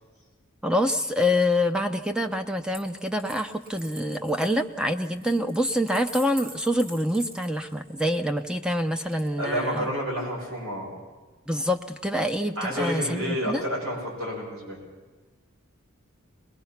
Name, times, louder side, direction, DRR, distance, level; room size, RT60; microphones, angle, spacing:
voice 1, 0.6-9.9 11.5-13.6, left 1 dB, 5° right, 7 dB, 0.6 m, -26 dB
Coin (dropping), 2.6-8.0 9.1-9.8, right 2 dB, 45° right, 2.8 m, -45 dB
voice 2, 9.4-10.9 12.5-14.8, equal, 85° right, -2 dB, 6.4 m, -30 dB
21.5 x 20.5 x 5.9 m, 1.3 s
head